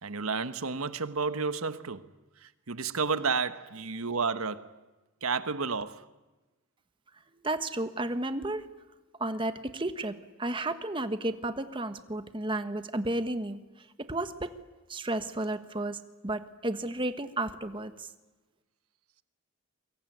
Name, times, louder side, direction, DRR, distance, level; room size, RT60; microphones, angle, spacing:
voice 1, 0.0-2.1 2.4-4.8 5.2-6.0, right 4 dB, 90° right, 1.2 m, -31 dB
voice 2, 7.4-8.7 9.2-13.6 14.1-14.5 14.9-18.1, right 2 dB, 25° right, 1.3 m, -32 dB
24.0 x 23.0 x 9.4 m
head